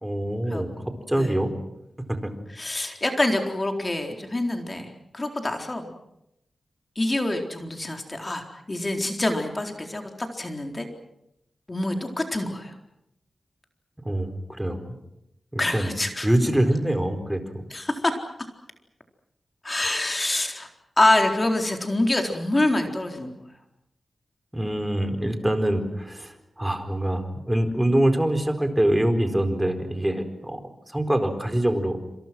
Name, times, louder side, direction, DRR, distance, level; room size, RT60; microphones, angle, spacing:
voice 1, 0.0-1.5 2.1-2.3 14.0-15.0 15.5-15.9 16.2-17.6 24.5-32.0, right 1 dB, 10° right, 6 dB, 4.3 m, -25 dB
voice 2, 2.6-5.9 7.0-10.9 11.7-12.7 15.6-16.3 17.7-18.1 19.6-20.7 21.0-23.3, left 1 dB, 30° left, 4 dB, 4.0 m, -26 dB
28.0 x 27.0 x 6.1 m, 0.83 s
wide cardioid pair, 85°, 0 cm